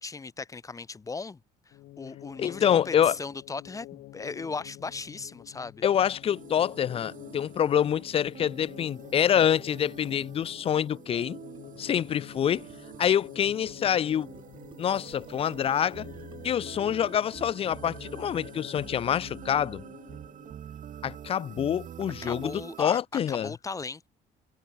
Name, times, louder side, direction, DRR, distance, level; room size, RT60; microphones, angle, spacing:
voice 1, 0.0-1.4 1.7-5.8 22.2-24.1, left 4 dB, 20° left, 0.9 m, -37 dB
sound 1, 1.7-20.5, left 16 dB, 75° left, 1.9 m, -48 dB
voice 2, 2.4-3.2 5.8-11.4 11.8-12.7 13.0-14.3 14.8-16.1 16.4-19.8 21.0-23.5, left 9 dB, 35° left, 0.4 m, -26 dB
sound 2, 6.2-22.8, right 9 dB, 50° right, 2.3 m, -46 dB
Gurgling, 11.1-18.2, right 5 dB, 30° right, 2.6 m, -56 dB
cardioid pair, 110°, 17 cm